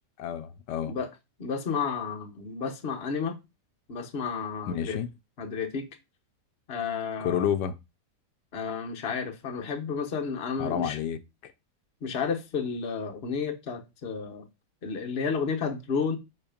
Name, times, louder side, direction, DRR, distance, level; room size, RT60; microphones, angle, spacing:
voice 1, 0.2-1.0 4.7-5.1 7.2-7.7 10.6-11.5, left 9 dB, 85° left, 1.3 m, -30 dB
voice 2, 1.4-3.4 3.9-5.0 5.4-5.9 6.7-7.5 8.5-11.0 12.0-14.5 14.8-16.2, left 5 dB, 40° left, 1.2 m, -31 dB
7.3 x 4.3 x 5.1 m
omnidirectional pair, 1.8 m